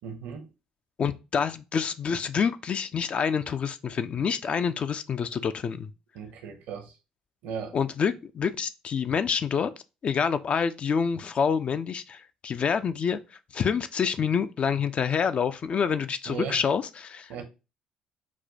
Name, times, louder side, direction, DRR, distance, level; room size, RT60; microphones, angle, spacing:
voice 1, 0.0-0.5 6.1-6.9 7.4-7.8 16.3-16.6 17.3-17.4, right 6 dB, 65° right, 0.7 m, -36 dB
voice 2, 1.0-5.9 7.7-9.7 10.0-17.4, left 6 dB, 40° left, 0.3 m, -27 dB
5.9 x 2.2 x 2.6 m
figure-of-eight pair, 50°, 3 cm